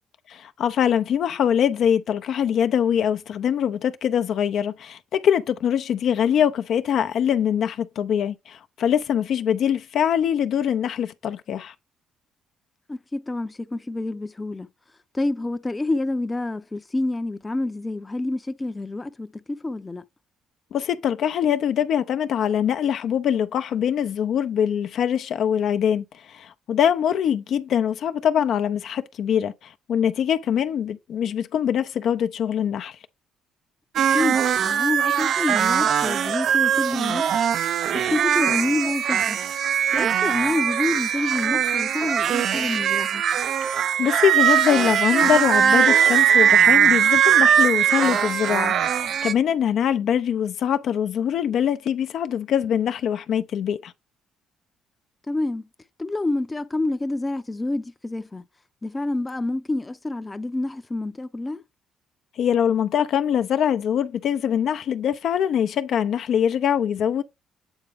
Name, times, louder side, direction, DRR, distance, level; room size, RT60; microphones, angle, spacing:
voice 1, 0.3-11.7 20.7-33.0 43.6-53.9 62.4-67.2, left 9 dB, 65° left, 0.5 m, -23 dB
voice 2, 12.9-14.7 15.1-20.0 34.0-37.3 37.9-39.4 39.9-43.2 55.3-55.7 56.0-58.4 58.8-61.6, left 2 dB, 20° left, 0.6 m, -28 dB
sound 1, 34.0-49.3, right 9 dB, 65° right, 0.4 m, -20 dB
8.0 x 3.7 x 3.5 m
cardioid pair, 85°, 0 cm